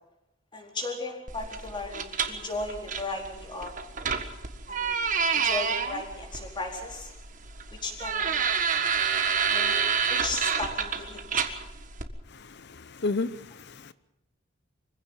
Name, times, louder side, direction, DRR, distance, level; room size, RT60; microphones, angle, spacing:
voice 1, 0.5-3.7 4.7-5.0 5.3-7.1 7.7-8.4 9.5-9.8 10.1-11.4, left 2 dB, 25° left, 1 dB, 4.2 m, -36 dB
sound 1, 1.3-12.0, right 6 dB, 40° right, 1.6 m, -29 dB
voice 2, 12.3-13.9, left 3 dB, 55° left, 15 dB, 0.7 m, -33 dB
24.5 x 16.0 x 7.3 m, 0.87 s
head